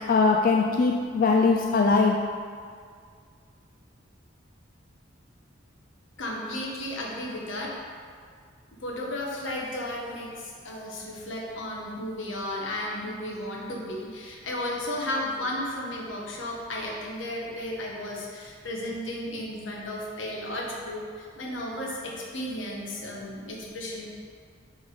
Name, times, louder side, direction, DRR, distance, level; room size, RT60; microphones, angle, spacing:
voice 1, 0.1-2.2, left 4 dB, 45° left, 1 dB, 0.3 m, -21 dB
voice 2, 6.2-7.7 8.8-24.1, left 1 dB, 80° left, -2 dB, 1.2 m, -34 dB
7.1 x 3.7 x 4.9 m, 2.1 s
head